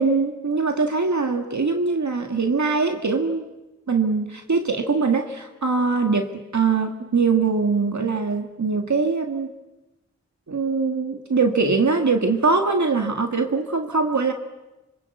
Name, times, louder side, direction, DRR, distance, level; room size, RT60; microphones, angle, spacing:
voice 1, 0.0-3.5 3.9-9.5 10.5-14.3, right 4 dB, 75° right, 4 dB, 1.9 m, -22 dB
26.5 x 25.5 x 8.2 m, 1.0 s
wide cardioid pair, 75°, 29 cm